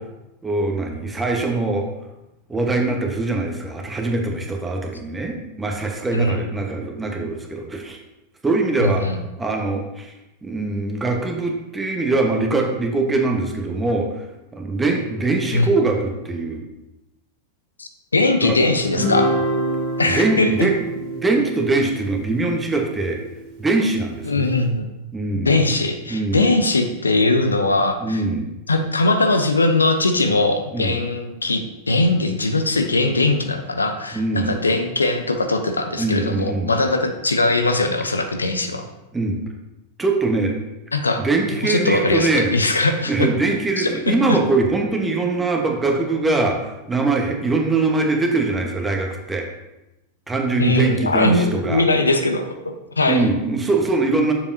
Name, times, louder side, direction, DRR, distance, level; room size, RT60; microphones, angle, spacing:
voice 1, 0.4-1.9 2.5-8.0 8.4-9.0 9.4-10.1 10.4-14.3 14.5-16.6 18.4-18.6 20.1-20.7 21.2-23.2 23.6-24.5 25.1-25.6 26.1-26.5 28.0-28.5 30.7-31.0 34.1-34.6 36.0-36.7 39.1-39.4 40.0-40.5 41.2-42.5 43.1-49.5 50.3-51.8 53.1-54.3, right 3 dB, 10° right, 2 dB, 1.1 m, -22 dB
voice 2, 6.1-6.4 8.8-9.2 15.5-15.7 17.8-19.3 20.0-20.7 24.2-24.9 25.3-28.2 28.7-38.9 40.9-41.2 41.6-43.3 43.8-44.4 50.6-52.5 53.0-53.3, left 2 dB, 75° left, 6 dB, 0.6 m, -20 dB
Guitar, 18.9-23.5, right 1 dB, 40° right, 1.9 m, -26 dB
7.0 x 7.0 x 2.7 m, 0.96 s
figure-of-eight pair, 90°, 0 cm